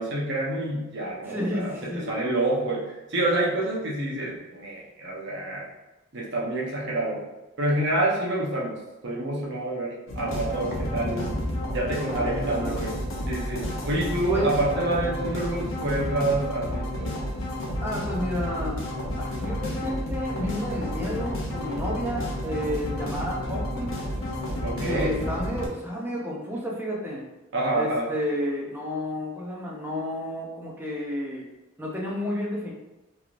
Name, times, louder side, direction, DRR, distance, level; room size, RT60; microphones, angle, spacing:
voice 1, 0.0-5.7 6.1-7.2 7.6-8.8 9.0-11.3 11.7-13.0 13.3-17.1 24.6-25.2 27.5-28.1, right 2 dB, 60° right, -4 dB, 0.9 m, -27 dB
voice 2, 1.2-2.2 12.1-12.8 14.3-14.5 17.8-18.8 19.2-24.0 24.8-27.2 27.7-31.4 31.8-32.7, left 1 dB, 10° right, -3 dB, 0.6 m, -31 dB
sound 1, 10.1-25.7, left 1 dB, 75° left, 0.7 m, -31 dB
3.3 x 2.9 x 2.5 m, 1.0 s
head